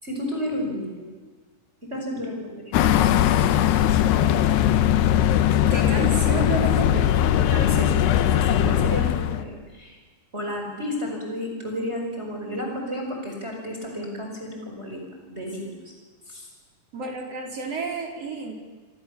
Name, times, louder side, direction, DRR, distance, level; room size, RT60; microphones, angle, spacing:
voice 1, 0.0-1.1 1.8-2.5 7.5-10.0 10.3-15.8 16.3-16.5, left 1 dB, 15° right, 1 dB, 5.5 m, -32 dB
sound 1, 2.7-9.4, left 11 dB, 90° left, 3.2 m, -20 dB
voice 2, 5.7-7.2 16.9-18.5, right 4 dB, 40° right, 0 dB, 5.5 m, -31 dB
27.0 x 26.5 x 7.2 m, 1.4 s
omnidirectional pair, 4.6 m